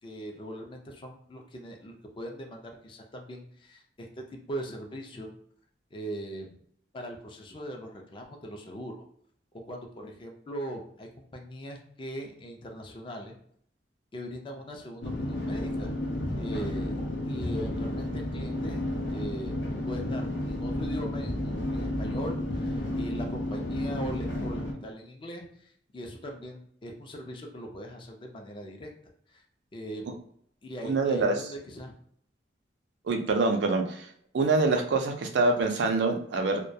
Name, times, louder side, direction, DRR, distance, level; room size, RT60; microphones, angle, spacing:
voice 1, 0.0-5.3 5.9-6.6 6.9-9.0 9.7-13.3 14.1-15.9 16.4-17.0 17.2-18.8 19.1-19.5 19.9-28.9 29.3-29.4 29.7-30.1 30.6-31.9, equal, 30° left, 2 dB, 0.4 m, -40 dB
sound 1, 15.0-24.7, left 1 dB, 85° left, 0.6 m, -31 dB
voice 2, 30.8-31.3 33.1-34.1 34.3-36.6, right 3 dB, 70° right, 4 dB, 0.4 m, -25 dB
2.2 x 2.1 x 2.6 m, 0.65 s
head